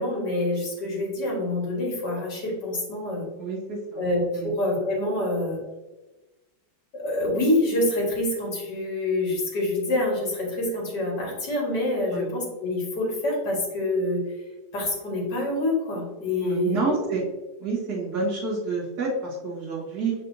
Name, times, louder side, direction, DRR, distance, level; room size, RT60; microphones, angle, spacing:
voice 1, 0.0-3.3 4.0-5.6 6.9-14.2 14.7-17.0, left 1 dB, 75° left, -3 dB, 2.4 m, -26 dB
voice 2, 3.4-4.0 4.3-4.5 12.1-12.3 16.4-17.2 17.6-20.1, right 4 dB, 65° right, -7 dB, 2.3 m, -29 dB
6.5 x 5.6 x 2.7 m, 1.1 s
omnidirectional pair, 1.8 m